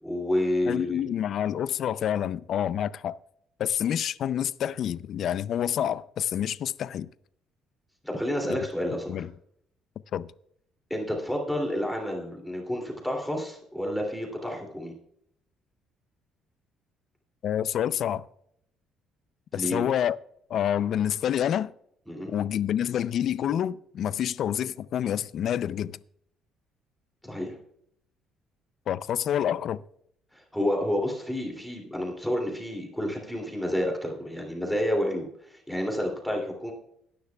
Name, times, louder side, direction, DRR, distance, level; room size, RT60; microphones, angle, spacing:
voice 1, 0.0-1.1 8.0-9.3 10.9-14.9 19.5-19.8 22.1-22.3 27.2-27.6 30.3-36.7, left 1 dB, ahead, 2.7 m, -30 dB
voice 2, 0.7-3.2 3.6-7.1 8.5-8.6 9.1-9.3 10.1-10.3 17.4-18.2 19.5-20.2 20.5-21.7 22.3-26.0 28.9-29.8, left 10 dB, 55° left, 0.4 m, -28 dB
18.0 x 10.0 x 2.3 m
cardioid pair, 135°, 0 cm